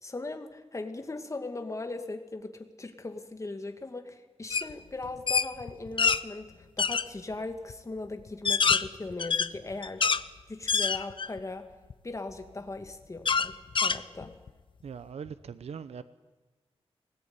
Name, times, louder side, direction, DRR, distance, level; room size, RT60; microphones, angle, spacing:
voice 1, 0.0-10.2 10.5-11.7 12.0-14.3, left 2 dB, 30° left, 6 dB, 2.5 m, -39 dB
sound 1, 4.5-4.7 5.0-6.2 6.8-7.1 7.7-7.8 8.3-10.2 10.7-11.4 11.9-12.0 13.3-14.5, left 5 dB, 50° left, 0.8 m, -26 dB
voice 2, 14.8-16.0, right 6 dB, 80° right, 13 dB, 0.9 m, -41 dB
25.0 x 19.5 x 9.7 m, 1.3 s
wide cardioid pair, 105°, 11 cm